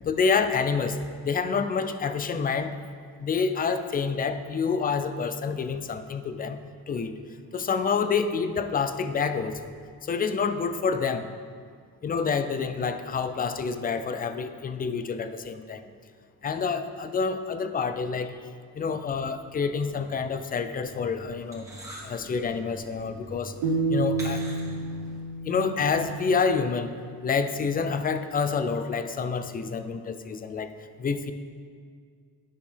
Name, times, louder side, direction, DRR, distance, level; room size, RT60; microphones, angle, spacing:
voice 1, 0.0-2.8 3.2-6.6 6.9-7.2 7.5-9.7 10.0-11.3 12.0-15.8 16.4-18.4 18.7-21.6 22.0-23.6 23.9-24.4 25.4-26.9 27.2-30.7 31.0-31.3, left 5 dB, 25° left, 10 dB, 0.3 m, -28 dB
sound 1, 19.9-25.2, right 1 dB, 10° right, 1.9 m, -45 dB
sound 2, 23.6-26.8, right 3 dB, 90° right, 1.0 m, -30 dB
10.5 x 4.9 x 3.4 m, 2.1 s
cardioid pair, 95°, 40 cm